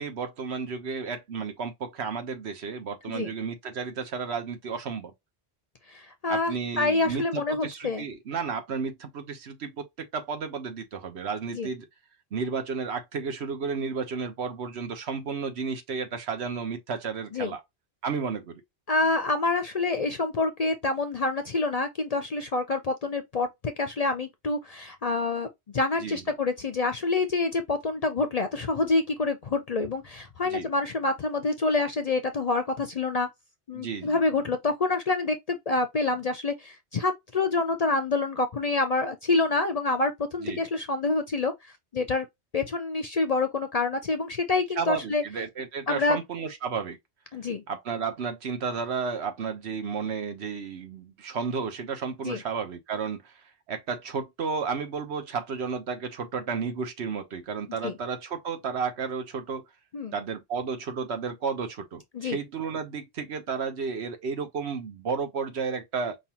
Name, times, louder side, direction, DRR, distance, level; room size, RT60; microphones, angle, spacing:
voice 1, 0.0-5.1 6.3-11.9 12.3-17.6 18.0-18.6 26.0-26.2 30.4-30.7 33.7-34.2 40.4-40.6 44.8-47.0 47.7-53.3 53.7-59.6 60.1-66.2, right 5 dB, 75° right, 1.2 m, -32 dB
voice 2, 5.9-8.1 11.5-11.7 17.3-17.5 18.9-25.5 25.7-33.3 33.7-41.5 41.9-42.3 42.5-45.2 45.9-46.2 47.3-47.6 52.2-52.4 57.8-57.9 59.9-60.2 62.1-62.4, left 3 dB, 50° left, 0.5 m, -27 dB
5.4 x 2.5 x 2.8 m
omnidirectional pair, 1.1 m